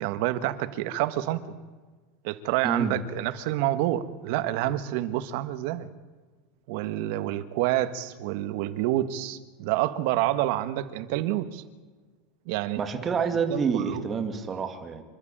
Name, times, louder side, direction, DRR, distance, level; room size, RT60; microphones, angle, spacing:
voice 1, 0.0-1.5 2.2-5.9 6.7-11.6 12.5-12.8 13.5-14.0, right 14 dB, 60° right, 12 dB, 1.5 m, -28 dB
voice 2, 2.6-3.0 12.8-15.0, right 6 dB, 20° right, 6 dB, 2.5 m, -28 dB
27.5 x 12.5 x 8.9 m, 1.4 s
supercardioid pair, 150°, 0 cm